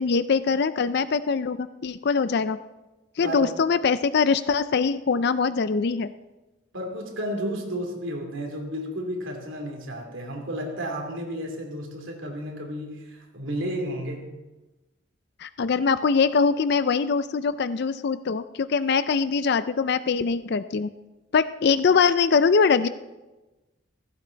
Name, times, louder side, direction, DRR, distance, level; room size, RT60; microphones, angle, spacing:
voice 1, 0.0-2.6 3.2-6.1 15.4-20.9 21.3-22.9, left 5 dB, 55° left, 13 dB, 0.4 m, -23 dB
voice 2, 3.2-3.6 6.7-14.3, equal, 70° right, 2 dB, 2.9 m, -32 dB
15.5 x 15.5 x 4.0 m, 1.1 s
head